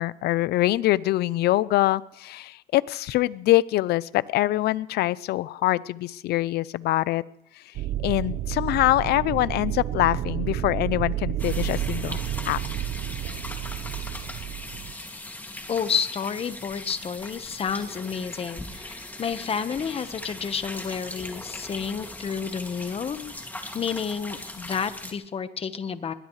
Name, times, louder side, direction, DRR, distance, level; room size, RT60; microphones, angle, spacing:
voice 1, 0.0-7.2 8.0-12.2 12.5-12.6, left 16 dB, 75° left, 19 dB, 0.6 m, -24 dB
sound 1, 7.7-14.9, right 12 dB, 70° right, 1.0 m, -30 dB
sound 2, 11.4-25.1, left 1 dB, 10° left, 2.4 m, -39 dB
voice 2, 15.7-23.5 23.7-26.1, left 6 dB, 35° left, 11 dB, 1.3 m, -30 dB
21.5 x 20.5 x 3.3 m, 0.76 s
cardioid pair, 110°, 17 cm